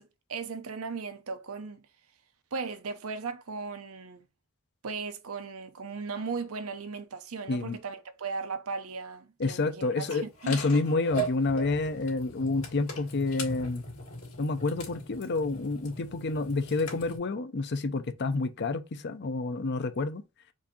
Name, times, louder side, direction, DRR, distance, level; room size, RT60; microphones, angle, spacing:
voice 1, 0.0-1.9 2.5-4.3 4.8-10.6, right 4 dB, 85° right, 0.7 m, -37 dB
voice 2, 9.4-13.8 14.4-20.2, left 3 dB, 55° left, 0.6 m, -29 dB
sound 1, 10.1-17.2, right 2 dB, 75° left, 2.1 m, -39 dB
4.7 x 2.7 x 4.1 m
head